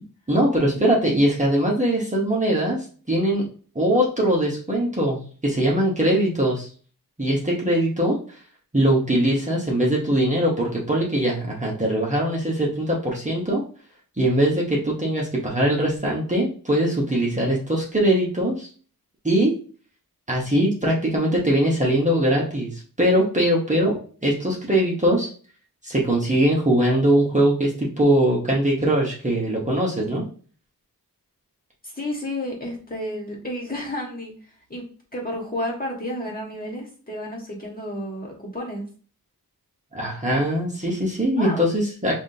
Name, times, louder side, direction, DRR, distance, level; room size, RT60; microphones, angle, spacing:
voice 1, 0.3-3.5 3.7-6.7 7.2-8.4 8.7-13.6 14.2-18.7 19.2-19.5 20.3-22.7 23.0-25.3 25.8-30.3 39.9-42.1, right 1 dB, 20° right, -4 dB, 1.1 m, -21 dB
voice 2, 31.8-34.3 34.7-34.8 35.1-38.9 41.4-41.7, left 1 dB, 25° left, -2 dB, 1.6 m, -31 dB
5.8 x 2.6 x 2.8 m, 0.41 s
wide cardioid pair, 115°, 36 cm